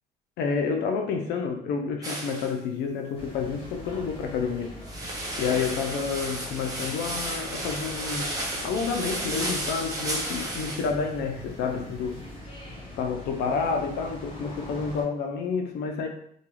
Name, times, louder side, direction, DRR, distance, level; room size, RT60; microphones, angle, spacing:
voice 1, 0.4-4.7 5.4-8.3 8.6-12.2 13.0-16.1, left 5 dB, 80° left, 4 dB, 0.5 m, -29 dB
sound 1, 2.0-2.5 4.8-10.9, right 1 dB, 20° right, 0.7 m, -33 dB
sound 2, 3.2-15.0, left 1 dB, 35° left, 1.0 m, -43 dB
2.3 x 2.2 x 3.1 m, 0.67 s
cardioid pair, 110°, 17 cm